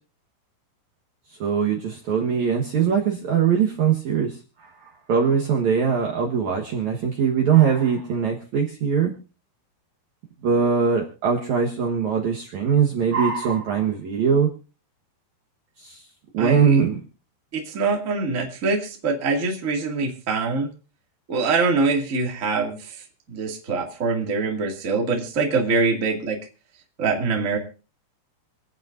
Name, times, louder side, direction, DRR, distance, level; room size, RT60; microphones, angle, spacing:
voice 1, 1.4-9.1 10.4-14.5 15.8-16.0 16.3-17.0, right 7 dB, 60° right, 0 dB, 2.2 m, -21 dB
voice 2, 16.4-16.8 17.5-20.7 21.3-26.4 27.0-27.6, right 4 dB, 25° right, 1 dB, 1.8 m, -24 dB
27.0 x 9.1 x 2.6 m, 0.34 s
omnidirectional pair, 4.7 m